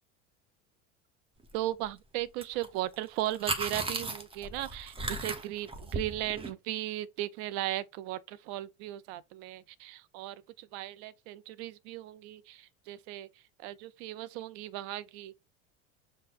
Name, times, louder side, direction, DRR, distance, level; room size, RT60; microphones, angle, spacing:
voice 1, 1.5-13.3 13.6-15.3, right 14 dB, 60° right, 0.5 m, -37 dB
sound 1, 2.4-2.7 2.9-6.5, right 3 dB, 15° right, 0.8 m, -36 dB
5.6 x 2.2 x 4.1 m
hypercardioid pair, 85°, 36 cm